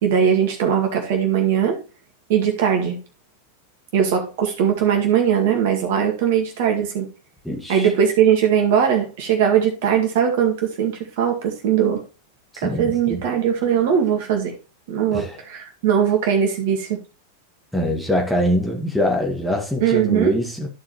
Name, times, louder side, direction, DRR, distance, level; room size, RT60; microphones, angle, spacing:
voice 1, 0.0-1.8 2.3-3.0 3.9-7.1 7.7-12.0 12.6-14.5 14.9-17.0 19.8-20.3, right 8 dB, 50° right, 2 dB, 2.0 m, -20 dB
voice 2, 7.4-7.9 12.5-13.2 15.1-15.4 17.7-20.7, left 1 dB, ahead, 0 dB, 1.9 m, -24 dB
13.5 x 4.9 x 3.0 m, 0.31 s
figure-of-eight pair, 90°, 0 cm